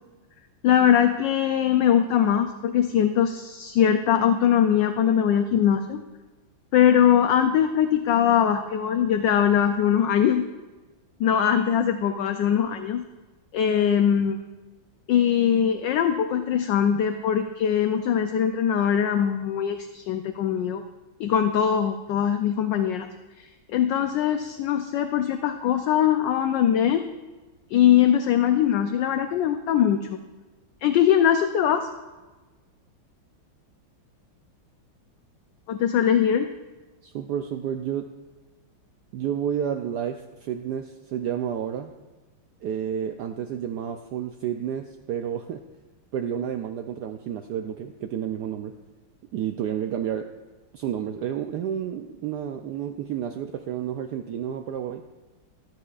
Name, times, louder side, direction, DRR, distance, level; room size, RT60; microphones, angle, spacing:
voice 1, 0.6-6.0 6.7-10.5 11.2-13.0 13.5-14.4 15.1-20.8 21.2-23.1 23.4-27.0 27.7-30.2 30.8-31.9 35.7-36.5, left 9 dB, 75° left, 7 dB, 1.1 m, -21 dB
voice 2, 37.0-38.0 39.1-41.9 42.6-45.6 46.1-48.7 49.3-50.3 50.7-55.0, right 9 dB, 85° right, 6 dB, 0.9 m, -30 dB
13.0 x 12.5 x 2.4 m, 1.2 s
omnidirectional pair, 2.3 m